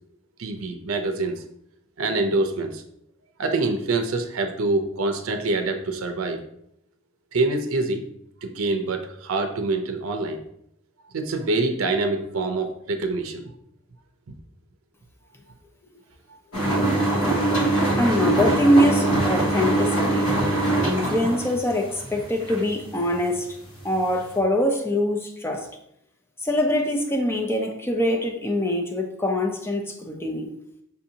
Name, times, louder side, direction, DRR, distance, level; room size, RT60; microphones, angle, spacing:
voice 1, 0.4-1.4 2.0-2.8 3.4-6.4 7.3-8.0 8.4-10.4 11.1-13.5 16.3-16.4, right 2 dB, 80° right, 6 dB, 0.5 m, -25 dB
sound 1, 16.5-23.3 23.7-24.4, right 2 dB, 85° left, 1.1 m, -23 dB
voice 2, 18.0-20.6 20.8-23.5 23.8-25.7 26.4-30.5, left 1 dB, 10° left, 2 dB, 0.4 m, -23 dB
5.4 x 2.6 x 2.7 m, 0.74 s
head